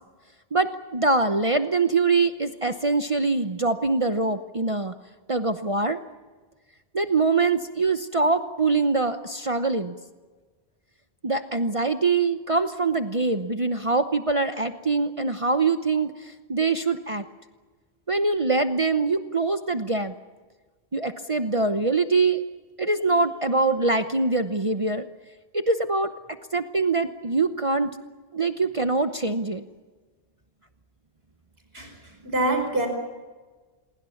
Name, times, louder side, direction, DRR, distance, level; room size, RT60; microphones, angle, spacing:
voice 1, 0.5-4.9 5.3-6.0 6.9-9.9 11.2-17.2 18.1-20.1 20.9-22.4 22.8-25.1 25.5-26.1 26.5-27.9 28.3-29.6, right 3 dB, 35° right, 8 dB, 0.9 m, -24 dB
voice 2, 32.2-32.9, right 2 dB, 70° right, 5 dB, 5.4 m, -24 dB
27.5 x 22.0 x 7.2 m, 1.3 s
omnidirectional pair, 1.1 m